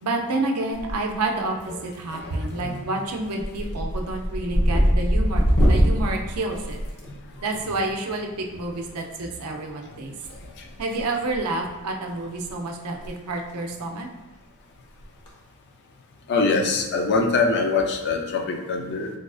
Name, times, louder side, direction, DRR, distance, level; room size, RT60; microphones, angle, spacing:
voice 1, 0.0-6.8 7.4-10.1 10.8-14.1, right 2 dB, 85° right, 2 dB, 0.5 m, -29 dB
sound 1, 0.7-1.3 1.6-2.1 2.5-2.8 3.1-7.5 8.9-9.0 10.2-11.0 11.3-11.5 12.1-12.2 12.4-12.5 12.9-13.1 13.4-13.5 15.0-15.3, equal, 80° left, 0.8 m, -23 dB
voice 2, 2.1-2.8 7.1-7.5 10.6-10.7 16.3-19.1, left 4 dB, 50° left, 3 dB, 0.4 m, -24 dB
4.0 x 2.4 x 2.3 m, 1.3 s
head